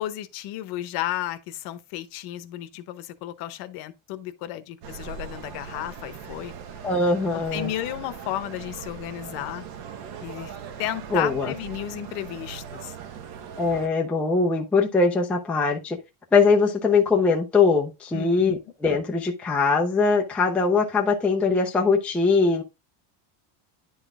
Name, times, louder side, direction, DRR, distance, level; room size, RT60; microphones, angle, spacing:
voice 1, 0.0-6.5 7.3-9.6 10.2-10.5 10.8-13.0 18.1-18.6, left 13 dB, 55° left, 0.9 m, -33 dB
sound 1, 4.8-13.9, right 7 dB, 65° right, 1.3 m, -40 dB
voice 2, 6.8-7.7 11.1-11.5 13.6-16.0 16.3-22.6, left 4 dB, 5° left, 0.4 m, -21 dB
10.0 x 4.0 x 3.6 m
cardioid pair, 170°, 44 cm